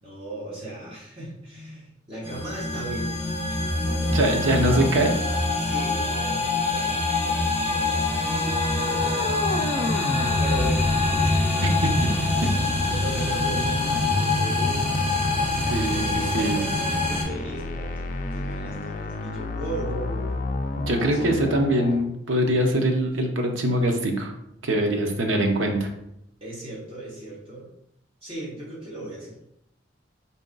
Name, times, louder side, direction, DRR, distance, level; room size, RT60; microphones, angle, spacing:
voice 1, 0.0-3.1 3.5-4.2 5.5-9.5 10.4-10.9 11.2-11.5 12.3-14.9 15.8-17.9 18.3-20.4 20.9-21.5 26.4-27.7 28.2-29.4, right 2 dB, 30° right, -6 dB, 1.7 m, -37 dB
sound 1, 2.2-17.2, left 2 dB, 5° left, 1.8 m, -25 dB
voice 2, 4.1-5.1 11.8-11.9 15.7-16.6 20.9-24.3 24.6-25.9, right 1 dB, 85° right, 3 dB, 0.8 m, -23 dB
sound 2, 8.1-22.0, left 2 dB, 45° left, 0.4 m, -31 dB
4.5 x 2.8 x 3.8 m, 0.78 s
head